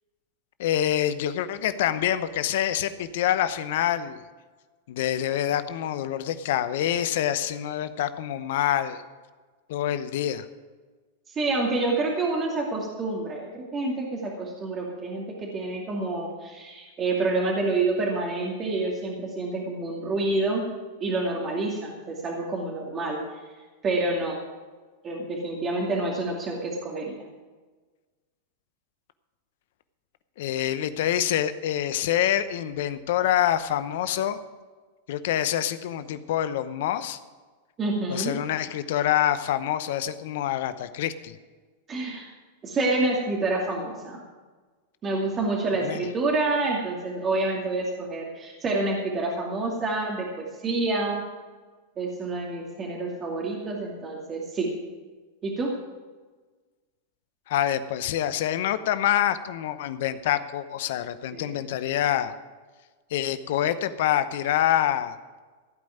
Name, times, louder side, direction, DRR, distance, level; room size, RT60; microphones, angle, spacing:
voice 1, 0.6-4.2 4.9-9.0 9.7-10.4 30.4-34.4 35.1-37.2 38.1-41.4 45.8-46.0 57.5-62.3 63.1-65.1, left 11 dB, 65° left, 13 dB, 0.8 m, -26 dB
voice 2, 11.3-20.6 21.0-23.2 23.8-24.4 25.0-27.2 37.8-38.4 41.9-42.3 42.6-44.2 45.0-51.2 52.0-54.7 55.4-55.7 61.3-61.5, right 2 dB, 30° right, -2 dB, 2.3 m, -28 dB
15.5 x 5.3 x 9.3 m, 1.4 s
hypercardioid pair, 110°, 0 cm